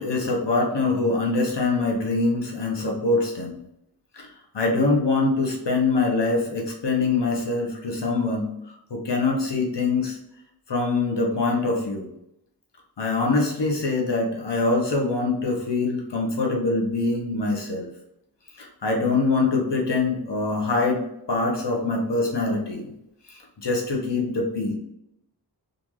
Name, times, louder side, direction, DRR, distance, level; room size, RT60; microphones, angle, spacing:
voice 1, 0.0-3.6 4.1-4.3 4.5-10.2 10.7-12.1 13.0-17.9 18.6-21.0 21.3-22.9 23.3-24.8, left 3 dB, 90° left, 0 dB, 1.0 m, -24 dB
3.8 x 2.6 x 3.0 m, 0.81 s
wide cardioid pair, 45°, 41 cm